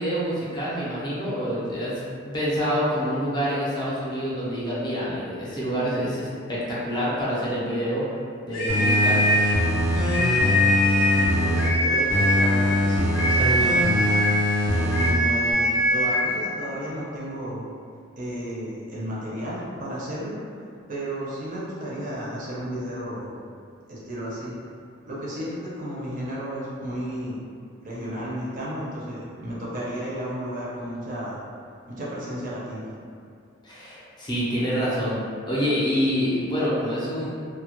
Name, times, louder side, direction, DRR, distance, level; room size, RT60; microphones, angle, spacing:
voice 1, 0.0-8.0 8.4-9.2 33.6-35.2 35.5-37.3, equal, 20° left, -8 dB, 0.5 m, -27 dB
sound 1, 8.5-9.6 10.0-11.3 11.6-12.5 13.1-14.4 14.9-16.3, equal, 85° left, 0.6 m, -22 dB
sound 2, 8.7-11.7 12.1-15.1 15.5-15.6, left 1 dB, 80° right, 0.7 m, -23 dB
voice 2, 10.8-14.2 14.7-17.6 18.2-20.4 20.9-23.3 23.9-24.5 25.0-27.4 27.8-31.4 31.9-32.9, equal, 40° right, -7 dB, 0.5 m, -33 dB
2.2 x 2.0 x 2.9 m, 2.2 s
head